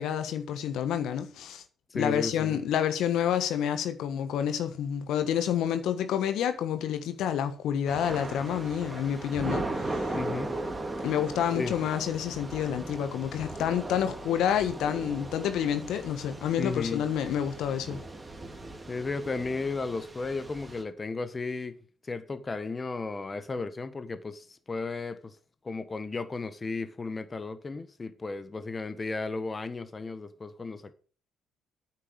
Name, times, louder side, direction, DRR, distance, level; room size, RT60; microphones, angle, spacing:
voice 1, 0.0-1.6 1.9-10.2 11.0-18.0, left 9 dB, 65° left, 1.4 m, -29 dB
voice 2, 1.9-2.6 10.1-10.5 11.5-11.8 16.6-17.0 18.9-21.8 22.0-25.4 25.6-30.9, left 3 dB, 30° left, 1.3 m, -34 dB
Thunder / Rain, 7.9-20.8, right 2 dB, 20° right, 2.8 m, -38 dB
9.3 x 7.6 x 6.4 m
hypercardioid pair, 50°, 0 cm